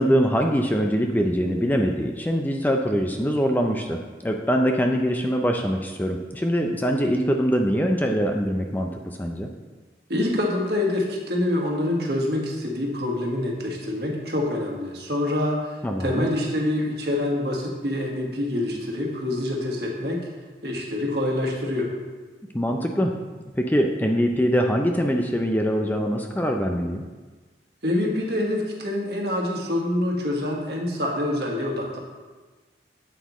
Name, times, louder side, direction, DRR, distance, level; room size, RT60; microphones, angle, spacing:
voice 1, 0.0-9.5 15.8-16.3 22.5-23.1 23.6-27.0, equal, 10° left, 3 dB, 0.4 m, -23 dB
voice 2, 10.1-20.2 20.6-21.9 27.8-32.0, left 1 dB, 60° right, -1 dB, 1.4 m, -26 dB
8.3 x 7.8 x 3.0 m, 1.3 s
head